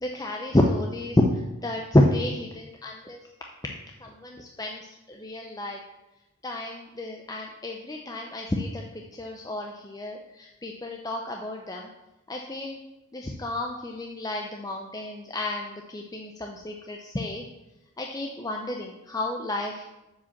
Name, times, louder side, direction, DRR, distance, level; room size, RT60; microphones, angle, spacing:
voice 1, 0.0-3.2 4.0-5.8 6.4-8.8 9.1-11.9 12.3-12.8 13.1-17.4 18.0-19.8, left 1 dB, 15° left, 1 dB, 0.5 m, -29 dB
7.2 x 5.0 x 7.2 m, 0.99 s
head